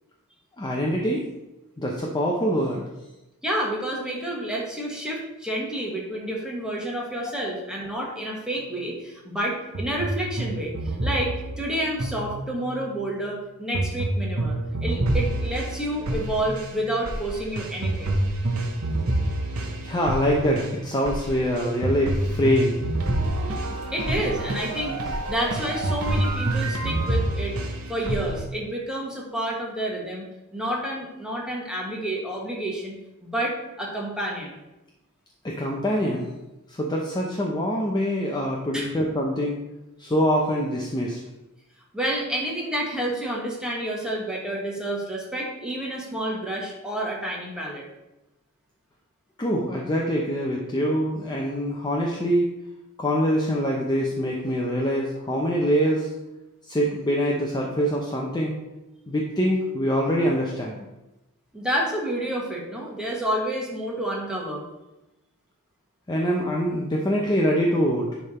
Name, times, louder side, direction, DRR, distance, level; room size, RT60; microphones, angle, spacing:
voice 1, 0.6-1.3 1.8-2.8 19.8-22.8 35.4-36.3 36.7-39.6 40.0-41.2 49.4-52.5 53.0-56.1 56.7-58.6 59.1-60.9 66.1-68.1, equal, 20° left, -2 dB, 0.7 m, -24 dB
voice 2, 3.4-18.2 23.9-27.6 27.9-30.3 30.5-33.0 33.2-34.6 38.7-38.9 41.9-47.8 61.5-64.6, right 1 dB, 5° right, -3 dB, 1.5 m, -29 dB
sound 1, 9.7-12.8 13.7-28.5, right 1 dB, 75° right, 1.1 m, -27 dB
10.0 x 3.5 x 4.3 m, 0.98 s
head